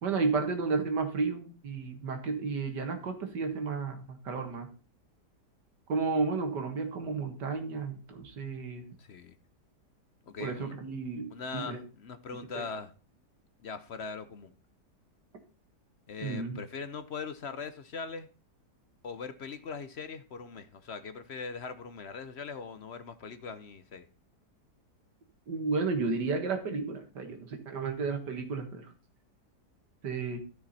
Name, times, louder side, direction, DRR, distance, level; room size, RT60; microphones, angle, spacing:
voice 1, 0.0-4.7 5.9-8.9 10.4-11.3 11.5-11.8 12.5-12.7 16.2-16.6 25.5-28.9 30.0-30.4, right 4 dB, 85° right, 2.3 m, -32 dB
voice 2, 9.0-9.3 10.3-10.7 11.3-12.9 13.6-14.5 16.1-18.3 19.0-24.0, left 5 dB, 55° left, 0.7 m, -41 dB
13.0 x 6.1 x 4.2 m
omnidirectional pair, 1.8 m